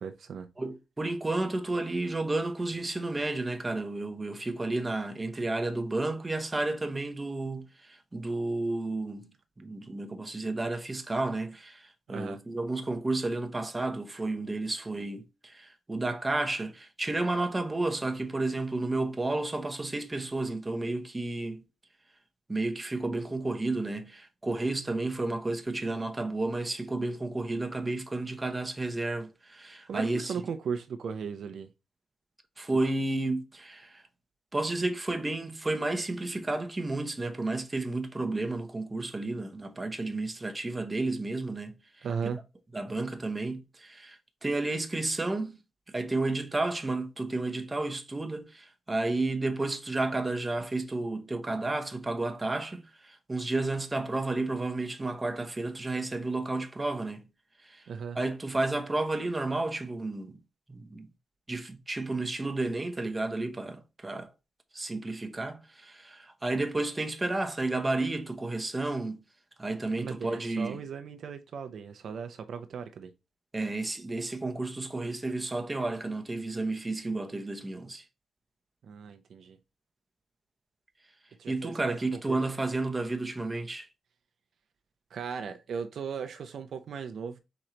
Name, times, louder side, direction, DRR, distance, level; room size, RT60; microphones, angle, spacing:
voice 1, 0.0-0.5 12.1-12.4 29.9-31.7 42.0-42.4 57.9-58.2 70.0-73.1 78.8-79.6 81.4-82.4 85.1-87.4, right 6 dB, 65° right, 0.5 m, -37 dB
voice 2, 0.6-9.3 9.6-21.6 22.5-30.3 32.6-34.0 34.5-42.3 42.7-45.6 45.9-57.2 57.6-57.9 58.1-60.4 60.7-61.1 61.5-64.3 64.7-69.2 69.6-70.8 73.5-78.0 81.5-83.9, right 2 dB, 20° right, 0.7 m, -32 dB
4.4 x 3.0 x 3.8 m
cardioid pair, 110°, 0 cm